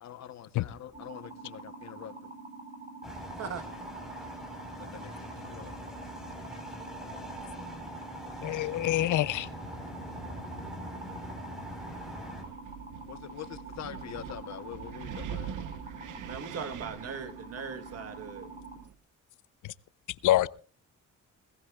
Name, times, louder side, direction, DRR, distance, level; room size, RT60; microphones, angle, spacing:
voice 1, 0.0-2.3 4.8-5.8 13.1-15.6 20.4-20.5, left 10 dB, 60° left, 1.0 m, -45 dB
sound 1, 0.9-18.8, right 3 dB, 25° right, 3.1 m, -46 dB
sound 2, 3.0-12.4, left 1 dB, ahead, 4.6 m, -43 dB
voice 2, 8.4-9.5 19.6-19.7 20.2-20.5, left 14 dB, 80° left, 0.6 m, -26 dB
Wind, 11.6-19.0, right 9 dB, 75° right, 1.1 m, -44 dB
voice 3, 16.3-18.5, right 6 dB, 50° right, 1.3 m, -39 dB
21.0 x 18.0 x 2.4 m
cardioid pair, 155°, 31 cm